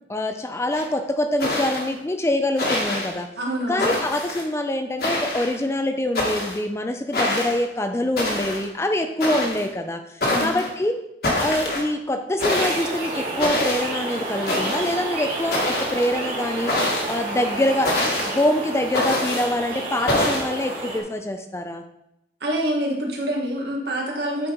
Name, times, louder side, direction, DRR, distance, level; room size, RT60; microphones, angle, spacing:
voice 1, 0.1-3.3 3.7-10.0 10.4-10.9 11.4-16.7 17.1-21.8, left 1 dB, 15° left, 7 dB, 0.3 m, -25 dB
sound 1, 0.7-0.8 1.4-1.9 2.6-3.1 3.8-4.4 5.0-5.6 6.1-6.6 7.1-7.6 8.2-8.6 9.2-9.6 10.2-10.7 11.2-11.9 12.4-12.9 13.4-13.9 14.5-15.0 15.5-16.1 16.7-17.2 17.8-18.4 18.9-19.5 20.1-20.4, left 1 dB, 55° left, 1.5 m, -25 dB
voice 2, 3.4-4.0 10.3-10.5 22.4-24.5, right 1 dB, 70° right, 0 dB, 1.5 m, -26 dB
sound 2, 12.4-21.0, right 2 dB, 50° right, 2.0 m, -30 dB
9.0 x 4.4 x 3.9 m, 0.83 s
head